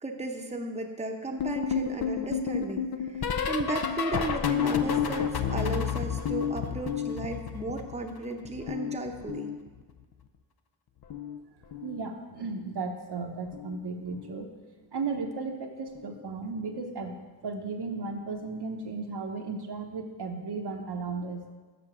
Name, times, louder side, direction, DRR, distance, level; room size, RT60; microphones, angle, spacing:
voice 1, 0.0-9.5, right 2 dB, 15° right, 3 dB, 0.8 m, -35 dB
sound 1, 1.4-8.2 8.4-10.0 11.0-11.4 11.6-12.0 13.5-13.8 14.1-14.4 16.0-16.1, left 7 dB, 55° left, 0.6 m, -31 dB
voice 2, 11.8-14.5 14.9-17.1 17.4-21.4, right 4 dB, 55° right, 4 dB, 0.9 m, -35 dB
6.9 x 5.4 x 6.1 m, 1.3 s
cardioid pair, 55°, 47 cm